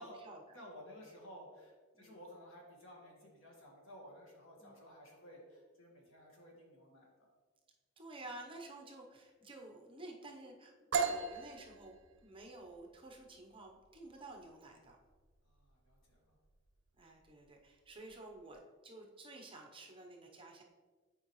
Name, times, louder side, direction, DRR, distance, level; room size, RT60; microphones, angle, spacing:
voice 1, 0.0-0.4 1.9-2.2 4.6-4.8 8.0-15.0 17.0-20.6, right 2 dB, 25° right, 1 dB, 0.8 m, -52 dB
voice 2, 0.5-7.3 15.4-16.4, equal, 75° left, -1 dB, 1.6 m, -55 dB
sound 1, 10.9-18.6, right 5 dB, 60° right, 0.6 m, -41 dB
8.5 x 4.7 x 3.1 m, 1.4 s
head